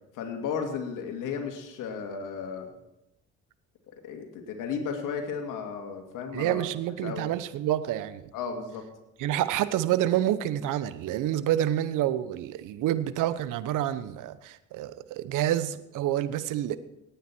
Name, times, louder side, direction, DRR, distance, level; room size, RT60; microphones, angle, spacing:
voice 1, 0.1-2.7 4.0-6.6 7.0-7.2 8.3-8.8, left 6 dB, 65° left, 3 dB, 2.6 m, -34 dB
voice 2, 6.3-8.3 9.2-16.8, right 12 dB, 65° right, 14 dB, 1.0 m, -28 dB
18.0 x 9.2 x 4.6 m, 0.86 s
hypercardioid pair, 65°, 33 cm